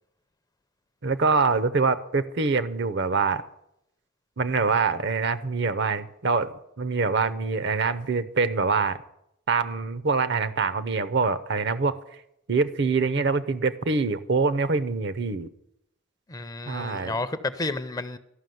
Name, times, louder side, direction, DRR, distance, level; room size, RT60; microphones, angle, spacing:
voice 1, 1.0-3.4 4.4-9.0 9.5-12.0 12.5-15.5 16.7-17.2, right 4 dB, 55° right, 15 dB, 0.7 m, -25 dB
voice 2, 16.3-18.2, left 2 dB, 20° left, 12 dB, 0.5 m, -31 dB
13.0 x 6.0 x 9.2 m, 0.79 s
head